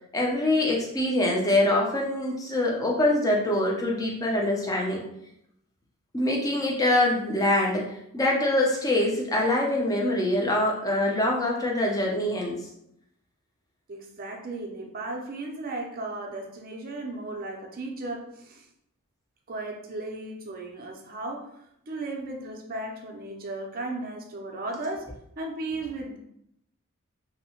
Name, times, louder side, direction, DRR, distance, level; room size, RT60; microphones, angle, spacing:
voice 1, 0.1-5.0 6.1-12.6, left 1 dB, 15° left, -1 dB, 0.4 m, -24 dB
voice 2, 13.9-18.7 19.5-21.5 21.9-25.1 25.4-26.2, right 2 dB, 40° right, 1 dB, 0.4 m, -35 dB
2.7 x 2.1 x 2.8 m, 0.76 s
head